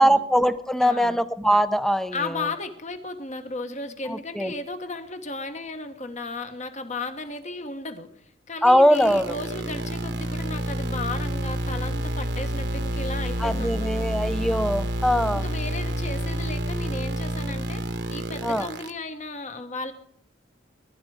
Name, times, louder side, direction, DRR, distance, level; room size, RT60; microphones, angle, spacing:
voice 1, 0.0-2.5 4.1-4.5 8.6-9.3 13.4-15.4 18.4-18.7, equal, ahead, 12 dB, 0.6 m, -21 dB
voice 2, 0.8-1.2 2.1-8.1 8.5-13.9 15.3-17.8 18.1-19.9, left 3 dB, 40° left, 8 dB, 1.4 m, -34 dB
sound 1, 8.9-18.9, right 1 dB, 60° right, 1.2 m, -29 dB
20.0 x 12.0 x 5.0 m, 0.73 s
head